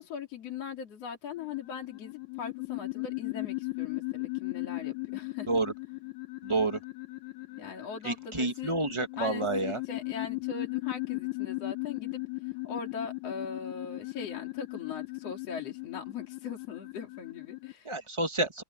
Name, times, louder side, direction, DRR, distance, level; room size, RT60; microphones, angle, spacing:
voice 1, 0.0-5.5 7.6-8.7 9.2-18.0, left 6 dB, 50° left, 3.5 m, -40 dB
sound 1, 1.4-17.7, left 27 dB, 75° left, 2.1 m, -37 dB
voice 2, 6.4-6.8 8.0-9.8 17.8-18.6, right 2 dB, 20° right, 0.8 m, -29 dB
omnidirectional pair, 3.7 m